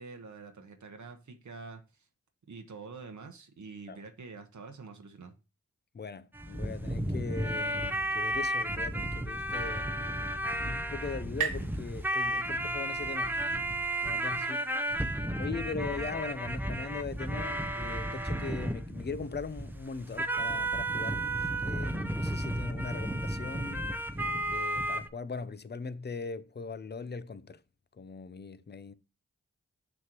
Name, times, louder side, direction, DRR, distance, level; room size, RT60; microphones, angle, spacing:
voice 1, 0.0-2.0 2.5-5.3, right 4 dB, 65° right, 1.0 m, -46 dB
voice 2, 5.9-9.9 10.6-13.4 14.0-14.7 15.4-21.2 21.6-23.9 24.5-27.6 27.9-28.9, left 4 dB, 35° left, 0.5 m, -40 dB
sound 1, 6.3-25.1, right 1 dB, 5° right, 0.7 m, -33 dB
sound 2, 9.9-13.3, right 8 dB, 85° right, 2.0 m, -41 dB
6.3 x 5.9 x 3.0 m
cardioid pair, 40°, 31 cm